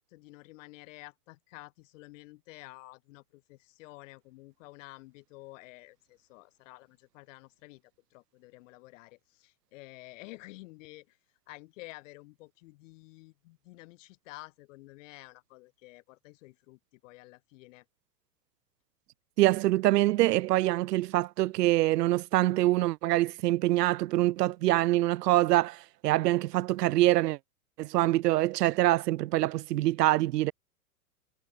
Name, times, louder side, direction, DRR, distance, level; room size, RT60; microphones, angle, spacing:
voice 1, 0.0-7.8 8.1-11.2 11.5-17.8, left 21 dB, 50° left, 2.6 m, -51 dB
voice 2, 19.4-27.4 27.8-30.5, right 16 dB, 80° right, 0.6 m, -25 dB
hypercardioid pair, 130°, 48 cm